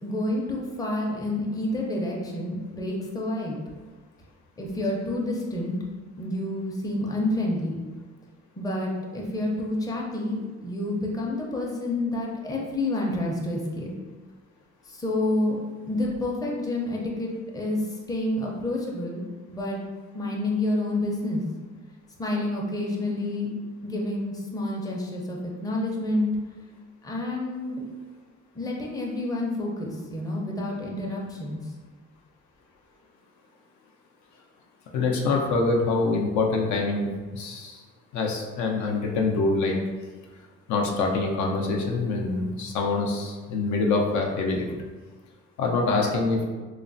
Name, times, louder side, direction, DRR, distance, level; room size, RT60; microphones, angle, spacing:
voice 1, 0.0-3.6 4.6-5.8 6.2-7.8 8.6-13.9 14.9-15.6 15.9-19.2 19.5-19.8 20.1-21.4 22.2-23.5 23.8-26.3 27.0-27.8 28.6-31.6, left 1 dB, 10° left, -3 dB, 0.5 m, -29 dB
voice 2, 34.9-37.8 38.1-39.8 40.7-44.7 45.6-46.4, left 3 dB, 70° left, 1 dB, 0.5 m, -25 dB
3.0 x 2.0 x 2.6 m, 1.3 s
cardioid pair, 90°, 30 cm